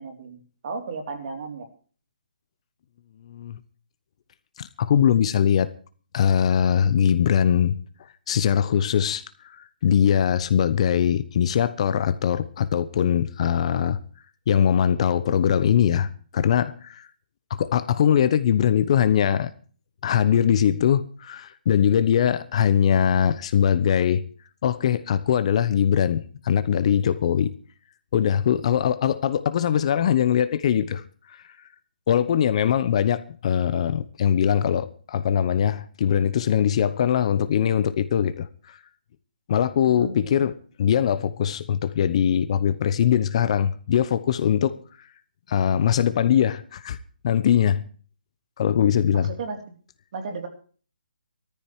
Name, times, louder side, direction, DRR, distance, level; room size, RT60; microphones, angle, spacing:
voice 1, 0.0-1.7 39.9-40.4 49.1-49.6 50.1-50.5, right 4 dB, 45° right, 3.7 m, -34 dB
voice 2, 3.3-3.6 4.6-5.7 6.1-7.8 8.3-9.2 9.5-14.0 14.5-17.1 17.5-19.5 20.0-24.2 24.6-27.5 28.1-31.0 32.1-38.8 39.5-44.8 45.5-47.0 47.2-47.8 48.6-49.3, left 9 dB, 40° left, 1.0 m, -21 dB
15.5 x 14.0 x 4.7 m
hypercardioid pair, 155°, 5 cm